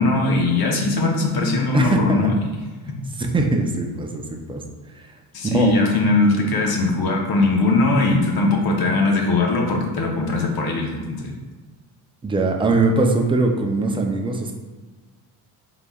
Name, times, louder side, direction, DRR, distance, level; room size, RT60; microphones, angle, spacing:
voice 1, 0.0-2.3 5.3-11.3, left 3 dB, 55° left, 0 dB, 0.9 m, -20 dB
voice 2, 1.7-2.3 3.2-4.6 4.9-5.1 5.4-5.8 12.2-14.5, right 2 dB, 10° right, 2 dB, 0.4 m, -21 dB
3.9 x 3.3 x 2.3 m, 1.3 s
cardioid pair, 85°, 44 cm